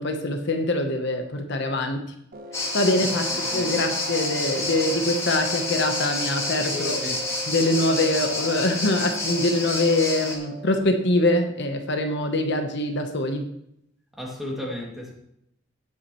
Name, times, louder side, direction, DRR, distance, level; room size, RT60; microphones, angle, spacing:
voice 1, 0.0-2.0 2.7-3.3 3.5-7.0 7.5-13.5, left 1 dB, 60° left, 1.0 m, -24 dB
sound 1, 2.3-10.8, right 1 dB, 50° right, 1.1 m, -38 dB
sound 2, 2.5-10.4, left 2 dB, 15° left, 1.9 m, -29 dB
voice 2, 3.4-3.9 6.6-7.3 14.1-15.1, left 1 dB, ahead, 2.3 m, -34 dB
17.0 x 7.3 x 3.1 m
head